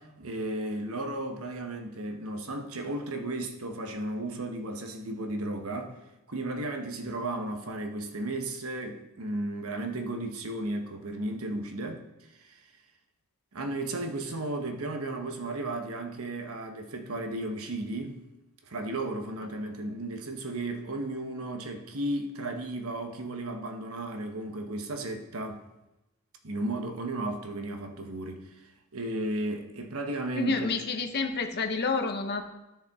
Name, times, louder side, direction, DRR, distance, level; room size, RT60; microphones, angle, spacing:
voice 1, 0.0-6.0 6.3-12.1 12.4-12.6 13.5-18.2 18.7-25.6 26.4-28.6 28.9-30.8, right 2 dB, 75° right, 1.0 m, -34 dB
voice 2, 30.4-32.4, left 4 dB, 50° left, 0.9 m, -29 dB
13.0 x 5.4 x 3.6 m
head